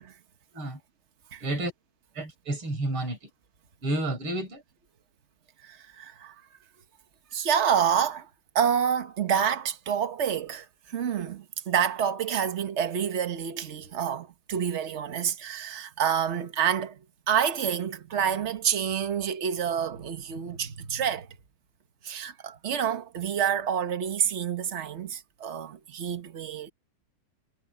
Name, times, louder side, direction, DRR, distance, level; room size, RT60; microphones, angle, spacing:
voice 1, 1.4-1.7 2.1-3.3 3.8-4.6, right 1 dB, 85° right, 5.6 m, -30 dB
voice 2, 5.6-6.3 7.3-8.3 8.5-17.0 17.3-21.3 22.0-26.7, right 8 dB, 40° right, 1.3 m, -28 dB
omnidirectional pair, 2.3 m